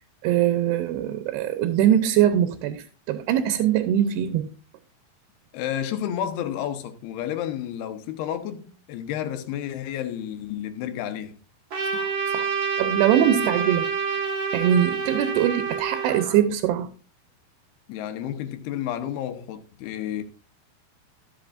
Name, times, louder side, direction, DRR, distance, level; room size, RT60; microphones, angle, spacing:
voice 1, 0.2-4.5 11.9-12.1 12.3-12.5 12.8-14.2 14.5-16.9, right 10 dB, 85° right, 2.8 m, -22 dB
voice 2, 5.5-11.4 17.9-20.2, left 10 dB, 80° left, 2.9 m, -31 dB
Trumpet, 11.7-16.4, right 5 dB, 45° right, 1.7 m, -27 dB
14.0 x 7.6 x 2.5 m
omnidirectional pair, 4.6 m